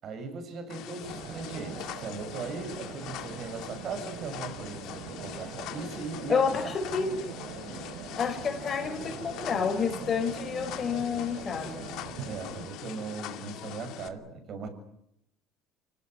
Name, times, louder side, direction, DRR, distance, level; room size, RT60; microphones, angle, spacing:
voice 1, 0.0-6.5 6.8-6.9 12.2-14.7, right 4 dB, 45° right, 7.2 m, -39 dB
sound 1, 0.7-14.1, left 12 dB, 65° left, 2.4 m, -42 dB
sound 2, 1.0-12.7, right 7 dB, 65° right, 3.7 m, -42 dB
voice 2, 6.3-7.2 8.2-11.9, left 6 dB, 35° left, 5.4 m, -29 dB
26.5 x 18.5 x 9.8 m
cardioid pair, 120°, 0 cm